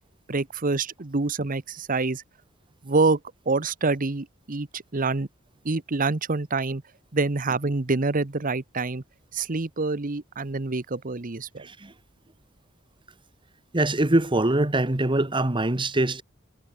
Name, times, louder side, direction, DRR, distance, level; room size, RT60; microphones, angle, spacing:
voice 1, 0.3-2.2 2.8-3.2 3.5-5.3 5.6-6.8 7.1-9.0 9.3-11.7, right 3 dB, 45° right, 1.0 m, -26 dB
voice 2, 11.6-11.9 13.7-16.2, right 2 dB, 25° right, 1.3 m, -23 dB
head